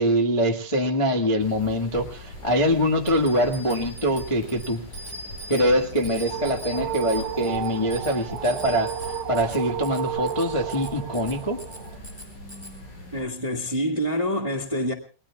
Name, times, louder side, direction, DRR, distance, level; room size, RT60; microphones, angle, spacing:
voice 1, 0.0-4.8 5.5-11.6, equal, 25° left, 0.7 m, -24 dB
sound 1, 1.4-13.2, left 1 dB, 70° left, 7.7 m, -41 dB
Bicycle bell, 3.0-12.7, equal, 5° left, 5.1 m, -42 dB
sound 2, 5.9-12.0, right 10 dB, 75° right, 2.7 m, -33 dB
voice 2, 13.1-14.9, equal, 20° right, 1.0 m, -26 dB
29.5 x 21.0 x 2.4 m
omnidirectional pair, 3.8 m